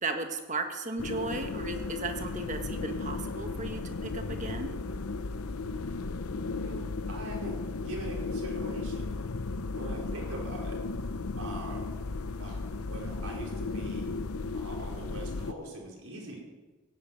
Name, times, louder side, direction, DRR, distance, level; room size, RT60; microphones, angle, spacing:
voice 1, 0.0-4.7, right 3 dB, 35° right, 5 dB, 1.6 m, -35 dB
sound 1, 1.0-15.5, left 3 dB, 80° left, 0.7 m, -35 dB
voice 2, 6.5-7.6 7.8-9.1 9.7-10.8 11.1-11.8 12.1-14.1 14.5-16.4, right 1 dB, 90° right, -2 dB, 5.0 m, -43 dB
16.5 x 8.8 x 9.3 m, 1.2 s
head